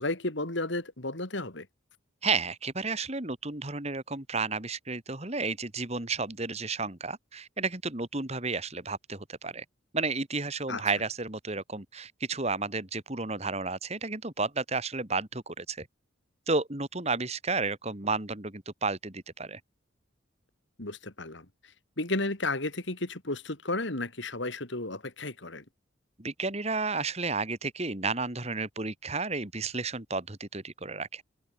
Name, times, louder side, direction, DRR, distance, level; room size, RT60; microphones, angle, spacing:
voice 1, 0.0-1.7 10.7-10.8 20.8-25.6, left 2 dB, 65° left, 3.2 m, -33 dB
voice 2, 2.2-9.6 9.9-15.9 16.5-19.6 26.2-31.2, right 3 dB, 30° right, 2.3 m, -32 dB
head